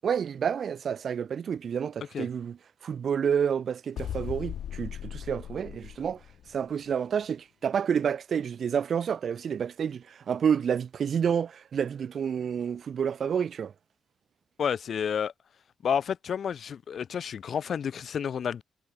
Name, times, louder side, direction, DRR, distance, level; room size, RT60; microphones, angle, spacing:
voice 1, 0.0-2.6 2.8-6.2 6.5-13.7, right 7 dB, 50° right, 7.8 m, -29 dB
sound 1, 4.0-6.7, left 10 dB, 70° left, 5.1 m, -38 dB
voice 2, 14.6-15.3 15.8-18.6, left 7 dB, 55° left, 5.7 m, -30 dB
cardioid pair, 130°, 0 cm